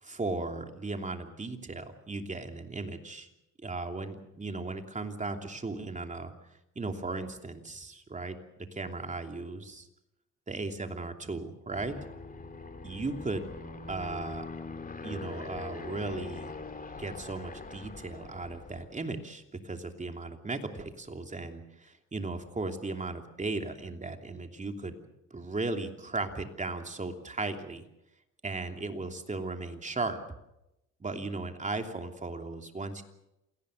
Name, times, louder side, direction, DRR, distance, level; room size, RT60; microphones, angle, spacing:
voice 1, 0.0-3.3 3.6-6.3 6.7-8.4 8.7-9.9 10.5-11.9 12.8-13.5 13.9-14.5 15.0-16.5 16.9-25.0 25.3-27.8 28.4-30.2 31.0-33.0, right 3 dB, 25° right, 5 dB, 3.0 m, -36 dB
Aircraft, 11.7-19.0, left 3 dB, 30° left, 2.8 m, -42 dB
27.5 x 18.5 x 6.6 m, 0.88 s
cardioid pair, 90°, 30 cm